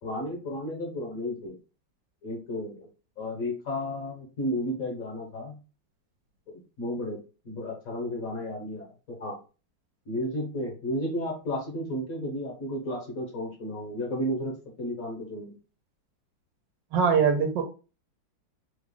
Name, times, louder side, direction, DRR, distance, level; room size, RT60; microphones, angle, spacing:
voice 1, 0.0-1.6 2.2-2.9 3.2-5.5 6.5-7.2 7.4-9.4 10.1-15.6, left 1 dB, 50° left, 0 dB, 1.2 m, -33 dB
voice 2, 16.9-17.6, right 6 dB, 75° right, 4 dB, 1.4 m, -22 dB
3.3 x 2.3 x 3.7 m, 0.32 s
omnidirectional pair, 2.1 m